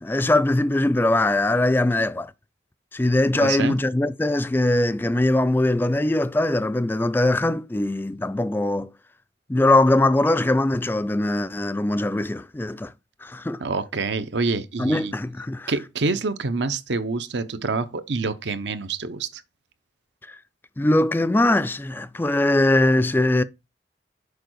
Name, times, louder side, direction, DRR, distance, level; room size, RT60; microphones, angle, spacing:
voice 1, 0.0-2.3 2.9-8.9 9.5-12.9 13.2-13.6 14.8-15.7 20.3-20.4 20.8-23.4, left 1 dB, 10° left, 0.3 m, -21 dB
voice 2, 3.3-3.8 13.6-15.1 15.7-19.4, right 4 dB, 70° right, 0.8 m, -27 dB
6.6 x 4.8 x 4.6 m
head